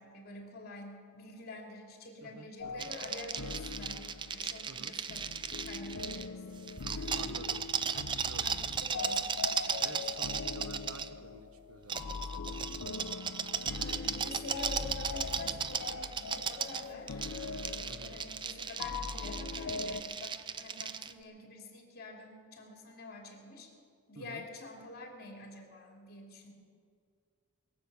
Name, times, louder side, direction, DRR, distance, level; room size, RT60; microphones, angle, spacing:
voice 1, 0.0-5.3 5.7-6.4 7.9-8.0 8.4-9.8 12.7-12.8 13.6-17.2 17.6-23.7 24.1-26.5, left 2 dB, 45° left, 1 dB, 2.8 m, -47 dB
voice 2, 2.2-2.9 4.7-5.0 7.1-7.6 7.9-8.6 9.8-12.7 17.9-18.2 24.2-24.4, right 3 dB, 85° right, 10 dB, 1.0 m, -50 dB
sound 1, 2.6-20.0, left 4 dB, 85° left, 0.6 m, -41 dB
sound 2, 2.8-6.3 6.7-11.1 11.9-21.1, right 7 dB, 20° right, 0.4 m, -36 dB
21.5 x 7.8 x 6.9 m, 2.2 s
head